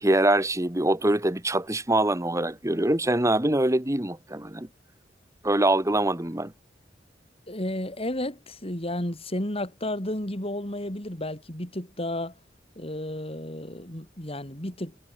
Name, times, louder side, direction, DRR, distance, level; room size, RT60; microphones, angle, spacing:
voice 1, 0.0-4.7 5.4-6.5, right 1 dB, 15° right, 1.8 m, -24 dB
voice 2, 7.5-12.3 12.8-15.0, left 1 dB, 30° left, 4.9 m, -32 dB
head